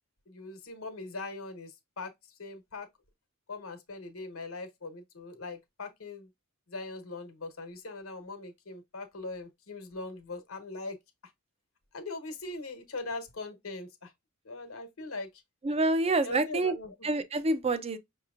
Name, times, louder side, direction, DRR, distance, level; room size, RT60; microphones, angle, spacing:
voice 1, 0.3-1.7 2.0-2.1 2.4-2.9 3.5-6.3 6.7-11.0 11.9-14.1 14.5-15.3 16.2-16.9, left 3 dB, 75° left, 1.1 m, -40 dB
voice 2, 15.6-16.8 17.0-18.0, right 2 dB, 30° right, 0.5 m, -27 dB
5.6 x 2.9 x 2.4 m
head